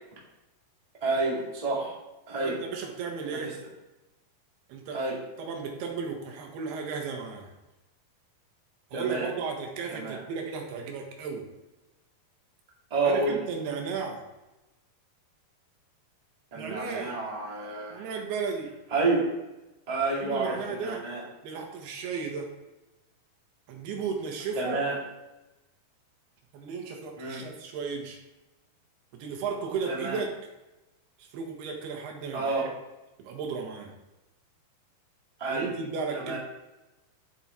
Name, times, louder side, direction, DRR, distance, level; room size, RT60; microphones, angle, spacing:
voice 1, 1.0-2.0 2.3-2.6 3.3-3.5 4.9-5.2 8.9-9.3 9.9-10.2 12.9-13.4 16.5-18.0 18.9-19.3 19.9-21.2 24.5-25.0 27.2-27.4 29.9-30.2 32.3-32.7 35.4-35.7 36.1-36.4, right 3 dB, 15° right, -4 dB, 1.2 m, -29 dB
voice 2, 2.4-3.5 4.7-5.0 5.4-7.5 8.9-11.5 13.0-14.2 16.6-17.1 17.9-18.8 20.2-21.1 21.4-22.5 23.7-24.8 26.5-28.2 29.1-30.3 31.2-32.7 33.2-33.9 35.5-36.4, right 5 dB, 90° right, 2 dB, 3.4 m, -34 dB
9.8 x 7.0 x 4.4 m, 1.0 s
omnidirectional pair, 4.4 m